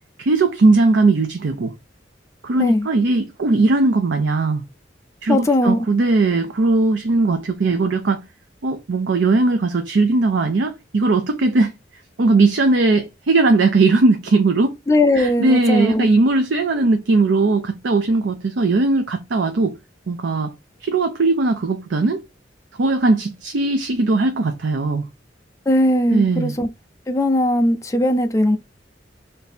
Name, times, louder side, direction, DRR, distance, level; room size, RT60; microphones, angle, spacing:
voice 1, 0.2-1.7 2.4-4.6 5.2-8.2 8.6-11.7 12.2-14.7 15.1-19.8 20.1-20.5 20.8-22.2 22.8-25.0 26.1-26.5, right 3 dB, 80° right, 0.5 m, -18 dB
voice 2, 5.3-5.9 14.9-16.1 25.7-26.7 27.1-28.6, left 1 dB, 15° left, 0.5 m, -18 dB
3.4 x 2.7 x 4.1 m
head